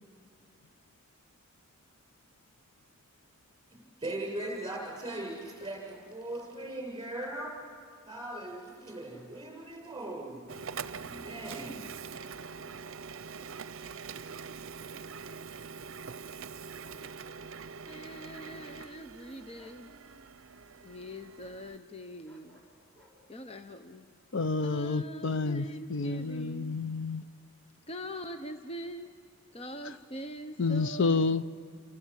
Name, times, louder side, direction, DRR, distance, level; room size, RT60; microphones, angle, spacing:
voice 1, 4.0-7.6 8.1-10.5 10.8-11.9, right 1 dB, 20° right, 7.1 m, -39 dB
Bark, 5.4-6.1 8.9-9.5 9.9-10.0 12.2-13.3 16.8-17.5 17.8-18.1 19.6-19.8 22.2-23.2, left 1 dB, 10° left, 5.6 m, -62 dB
Printer, 10.5-21.8, right 6 dB, 65° right, 0.6 m, -44 dB
voice 2, 17.9-19.9 20.8-22.6 23.3-24.1 24.6-26.8 27.9-29.1 29.5-31.2, equal, 30° left, 0.8 m, -43 dB
voice 3, 24.3-27.2 30.6-31.4, left 4 dB, 65° left, 0.6 m, -29 dB
28.5 x 25.5 x 7.5 m
head